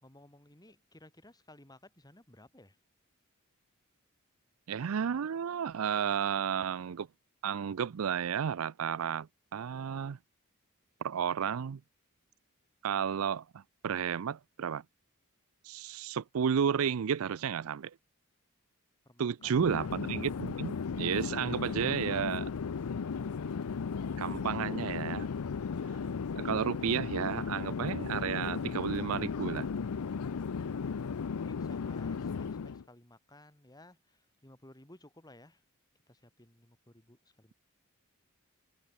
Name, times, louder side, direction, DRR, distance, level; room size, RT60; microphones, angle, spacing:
voice 1, 0.0-2.8 19.0-19.8 30.6-35.6 36.1-37.5, left 1 dB, 20° left, 2.9 m, -57 dB
voice 2, 4.7-7.1 7.4-10.2 11.0-11.8 12.8-14.8 15.6-17.9 19.2-22.5 24.2-25.3 26.4-29.7, right 7 dB, 75° right, 0.4 m, -32 dB
Chatter / Fixed-wing aircraft airplane, 19.4-32.8, left 5 dB, 90° left, 0.5 m, -35 dB
head